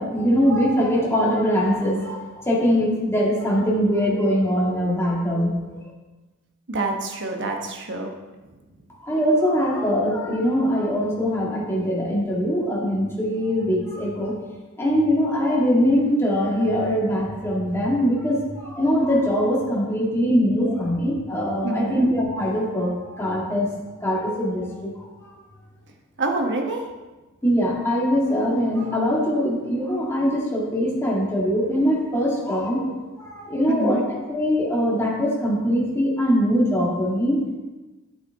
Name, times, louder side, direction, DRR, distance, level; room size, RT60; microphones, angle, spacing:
voice 1, 0.0-5.6 9.0-14.3 14.8-23.7 24.0-25.4 27.4-37.6, equal, 10° left, -4 dB, 1.9 m, -22 dB
voice 2, 6.7-8.1 21.6-22.1 26.2-26.8 33.7-34.1, right 2 dB, 55° right, 3 dB, 1.1 m, -26 dB
9.1 x 8.2 x 3.6 m, 1.2 s
head